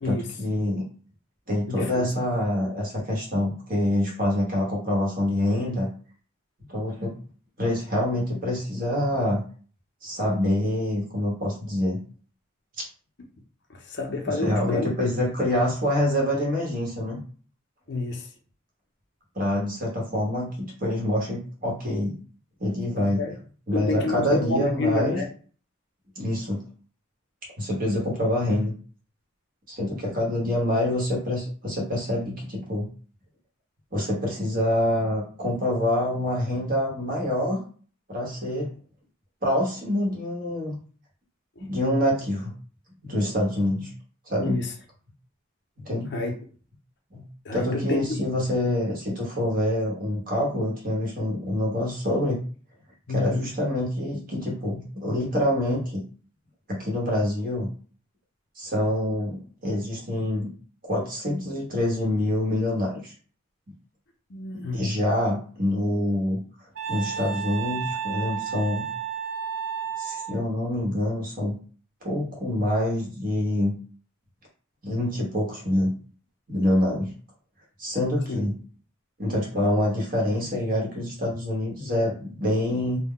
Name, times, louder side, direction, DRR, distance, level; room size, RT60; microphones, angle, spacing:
voice 1, 0.0-0.8 1.5-5.9 6.7-7.2 7.6-9.4 10.0-12.0 14.3-17.2 19.3-22.2 22.6-23.2 23.7-25.2 26.1-26.6 27.6-28.7 29.7-32.9 33.9-37.6 38.1-38.8 39.4-40.8 41.7-42.5 43.0-43.9 44.3-44.6 45.8-46.1 47.1-52.4 53.1-56.0 56.7-57.7 58.6-60.5 60.8-63.1 64.7-66.4 66.9-68.9 70.0-71.6 72.0-73.7 74.8-75.9 76.5-77.1 77.8-78.6 79.2-83.0, left 1 dB, 40° right, -2 dB, 1.0 m, -26 dB
voice 2, 1.7-2.0 13.7-15.1 17.9-18.3 23.0-23.3 23.7-25.3 41.6-41.7 44.4-44.7 46.1-46.3 47.4-48.2 53.1-53.5 64.3-64.8 78.3-78.5, left 3 dB, 55° left, 2 dB, 0.5 m, -29 dB
Wind instrument woodwind instrument, 66.8-70.4, right 7 dB, 60° right, 0.5 m, -32 dB
2.1 x 2.1 x 3.7 m, 0.41 s
head